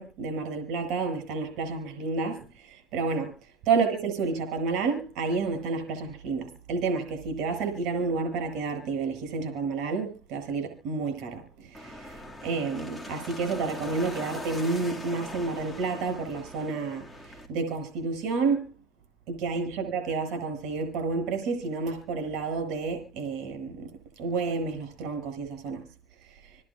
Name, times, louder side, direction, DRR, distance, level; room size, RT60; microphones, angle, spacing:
voice 1, 0.0-3.3 3.7-18.7 19.3-23.9 24.2-25.9, right 4 dB, 70° right, 7.5 m, -30 dB
sound 1, 11.7-17.5, left 1 dB, 5° left, 2.4 m, -41 dB
29.0 x 11.0 x 2.5 m
supercardioid pair, 100°, 0 cm